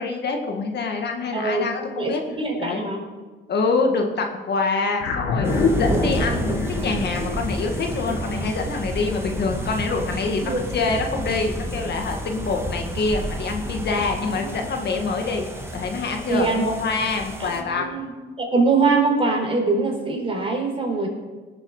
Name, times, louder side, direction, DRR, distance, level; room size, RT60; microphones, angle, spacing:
voice 1, 0.0-2.2 2.6-2.8 3.5-15.5 15.7-17.9, left 4 dB, 55° left, 3 dB, 1.8 m, -25 dB
voice 2, 1.3-1.7 2.0-3.0 10.4-10.6 14.4-14.5 16.3-16.7 17.4-18.1 18.4-21.1, right 3 dB, 30° right, 0 dB, 4.2 m, -23 dB
sound 1, 5.0-9.6, left 4 dB, 90° left, 1.6 m, -27 dB
sound 2, 5.4-17.6, right 1 dB, 10° right, 1.9 m, -30 dB
19.0 x 7.6 x 4.9 m, 1.4 s
cardioid pair, 90°, 20 cm